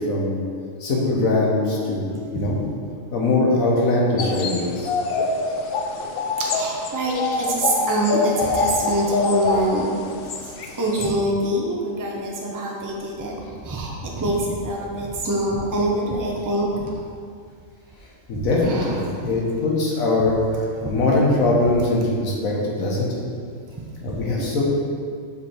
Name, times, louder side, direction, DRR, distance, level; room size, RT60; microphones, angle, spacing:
voice 1, 0.8-2.6 3.1-5.0 18.3-23.1 24.0-24.6, left 2 dB, 90° left, -4 dB, 1.6 m, -21 dB
sound 1, 4.2-11.1, left 3 dB, 60° left, 0.6 m, -25 dB
voice 2, 6.4-9.9 10.4-13.4 13.6-17.1 18.3-19.3 20.8-20.9 22.5-22.6 24.1-24.5, right 1 dB, 20° right, -2 dB, 0.6 m, -25 dB
5.8 x 4.8 x 4.4 m, 2.2 s
omnidirectional pair, 1.4 m